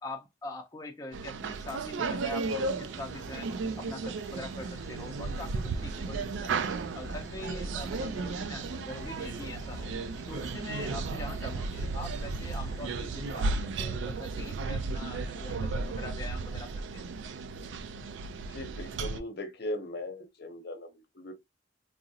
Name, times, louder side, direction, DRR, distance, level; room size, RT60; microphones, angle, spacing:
voice 1, 0.0-3.5 3.8-6.5 6.9-9.9 10.3-17.0, left 2 dB, 20° left, 0.5 m, -43 dB
sound 1, 1.1-19.2, right 4 dB, 90° right, 0.4 m, -34 dB
sound 2, 2.4-13.6, equal, 20° right, 0.7 m, -47 dB
voice 2, 18.5-21.3, left 1 dB, 60° left, 0.7 m, -39 dB
3.7 x 2.0 x 2.6 m
head